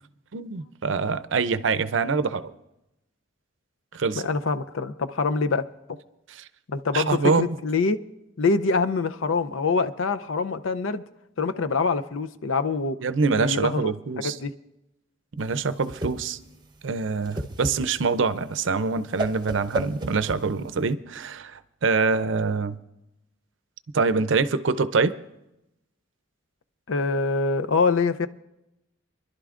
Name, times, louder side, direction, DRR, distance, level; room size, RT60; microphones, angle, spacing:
voice 1, 0.3-2.5 3.9-4.3 6.3-6.5 6.9-7.6 13.0-14.4 15.4-16.4 16.8-22.8 23.9-25.2, right 4 dB, 65° right, 0.5 m, -25 dB
voice 2, 4.2-5.7 6.7-8.0 8.4-11.0 11.4-13.0 13.4-14.5 26.9-28.3, left 4 dB, 85° left, 0.6 m, -25 dB
Whoosh swoosh swish, 15.4-20.9, right 2 dB, 20° right, 0.9 m, -34 dB
28.0 x 11.5 x 2.5 m
head